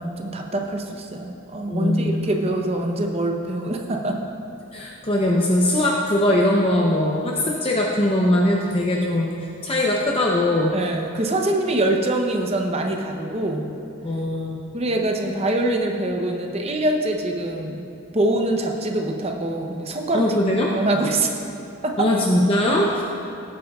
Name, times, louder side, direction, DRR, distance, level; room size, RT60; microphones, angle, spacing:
voice 1, 0.0-4.2 10.7-13.7 14.7-17.9 18.1-20.3 20.7-21.3 21.8-22.0, right 1 dB, 30° right, 2 dB, 0.7 m, -24 dB
voice 2, 1.7-2.3 4.7-9.3 9.6-10.8 14.0-14.7 20.1-20.8 22.0-23.0, left 1 dB, 25° left, -2 dB, 0.6 m, -21 dB
17.0 x 8.7 x 2.3 m, 2.7 s
head